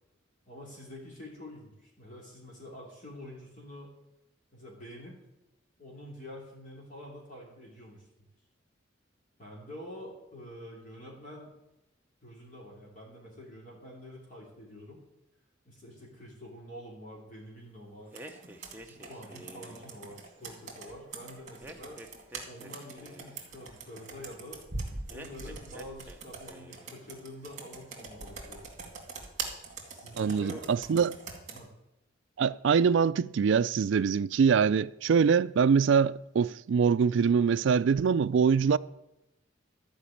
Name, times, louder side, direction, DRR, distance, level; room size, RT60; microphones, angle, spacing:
voice 1, 0.5-3.9 4.5-5.2 5.8-8.1 9.4-11.6 12.2-15.0 15.7-18.2 18.8-22.0 22.5-24.6 25.1-28.7 29.8-30.7 31.5-31.7, left 1 dB, 40° left, 2.8 m, -47 dB
sound 1, 18.1-20.0 21.6-23.4 25.1-26.2 26.4-27.0, right 1 dB, 10° right, 0.8 m, -49 dB
Computer keyboard, 18.1-31.6, right 4 dB, 40° right, 2.2 m, -43 dB
voice 2, 30.1-31.2 32.4-38.8, right 6 dB, 65° right, 0.3 m, -24 dB
13.0 x 5.1 x 8.5 m
head